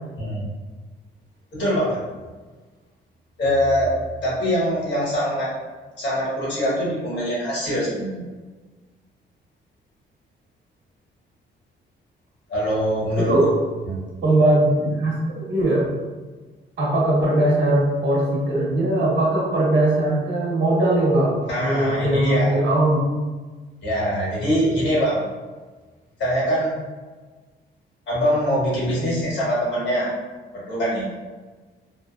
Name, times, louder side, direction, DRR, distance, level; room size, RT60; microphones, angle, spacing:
voice 1, 1.5-2.0 3.4-3.9 4.2-5.5 6.0-8.3 12.5-13.3 13.9-14.0 21.5-22.5 23.8-25.3 26.2-26.8 28.1-30.1 30.6-31.1, equal, 65° left, -7 dB, 1.4 m, -23 dB
voice 2, 13.1-13.5 14.2-15.9 16.8-23.0, right 1 dB, 60° right, -5 dB, 0.9 m, -20 dB
2.8 x 2.1 x 2.3 m, 1.3 s
cardioid pair, 90°, 20 cm